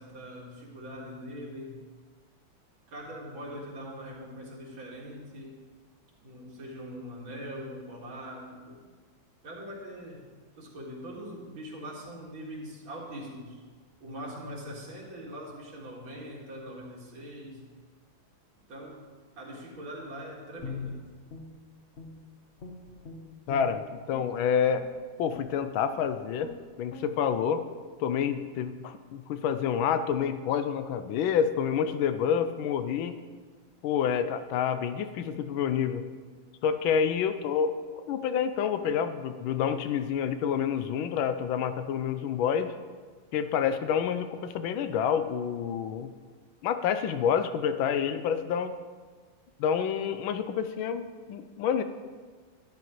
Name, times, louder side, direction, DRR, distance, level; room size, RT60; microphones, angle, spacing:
voice 1, 0.0-1.8 2.9-5.6 6.2-8.8 9.4-10.3 10.6-13.6 14.0-17.6 18.7-19.0 19.4-21.0, equal, 85° right, -4 dB, 2.8 m, -42 dB
Guitar, 20.6-22.3 22.6-24.3 24.7-24.9 25.3-25.6 26.0-26.1 26.4-26.6 26.9-27.1, left 3 dB, 40° left, 1.3 m, -42 dB
voice 2, 23.5-24.9 25.2-26.5 26.8-27.7 28.0-33.2 33.8-36.0 36.6-37.7 38.1-42.7 43.3-46.1 46.6-48.7 49.6-51.8, left 8 dB, 85° left, 10 dB, 1.4 m, -28 dB
12.0 x 10.5 x 3.1 m, 1.5 s
omnidirectional pair, 2.1 m